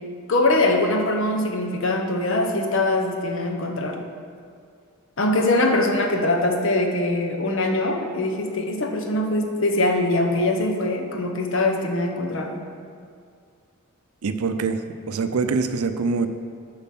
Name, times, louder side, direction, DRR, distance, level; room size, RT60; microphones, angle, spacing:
voice 1, 0.3-4.1 5.2-12.6, left 2 dB, 60° left, 3 dB, 0.8 m, -22 dB
voice 2, 14.2-14.8 15.1-16.3, right 4 dB, 80° right, 9 dB, 0.5 m, -24 dB
7.0 x 5.0 x 5.9 m, 2.2 s
head